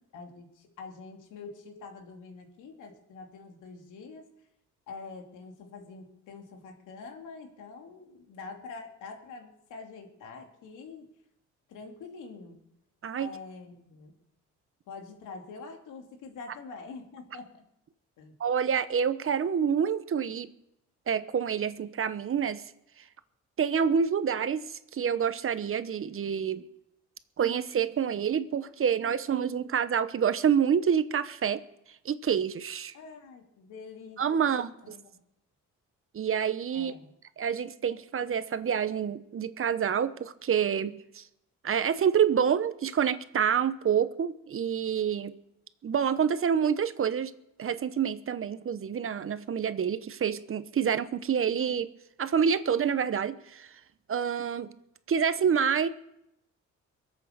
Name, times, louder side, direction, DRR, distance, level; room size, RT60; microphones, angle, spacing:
voice 1, 0.1-4.2 4.9-11.1 11.7-12.6 13.2-14.1 14.9-17.6 18.2-18.3 32.9-35.2 36.7-37.1, left 4 dB, 85° left, 3 dB, 2.9 m, -45 dB
voice 2, 18.4-20.5 21.1-22.6 23.6-26.7 27.4-31.6 32.0-32.9 34.2-35.0 36.1-36.9 37.4-41.2 41.6-45.3 45.8-47.3 47.6-51.9 52.2-53.7 54.1-54.7 55.1-55.9, right 7 dB, 45° right, 13 dB, 1.0 m, -27 dB
22.5 x 8.3 x 6.8 m, 0.82 s
cardioid pair, 90°, 30 cm